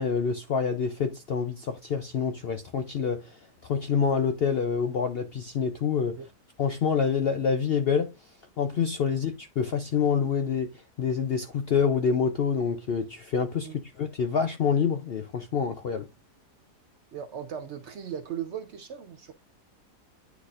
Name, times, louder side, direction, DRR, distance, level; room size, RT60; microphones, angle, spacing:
voice 1, 0.0-3.4 3.6-6.2 6.6-8.1 8.6-10.7 11.0-13.7 14.0-16.1, left 6 dB, 85° left, 0.5 m, -27 dB
voice 2, 17.1-19.3, right 8 dB, 65° right, 0.7 m, -37 dB
9.5 x 4.1 x 2.4 m
omnidirectional pair, 1.8 m